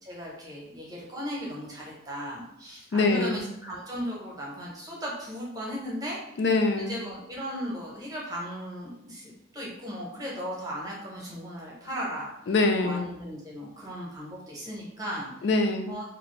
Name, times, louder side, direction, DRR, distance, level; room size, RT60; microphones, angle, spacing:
voice 1, 0.0-6.2 6.8-12.3 12.8-15.5 15.9-16.1, equal, 20° right, -4 dB, 0.8 m, -36 dB
voice 2, 2.9-3.5 6.4-7.0 12.5-13.1 15.4-15.9, left 3 dB, 60° left, 5 dB, 0.3 m, -24 dB
2.5 x 2.5 x 3.1 m, 0.78 s
head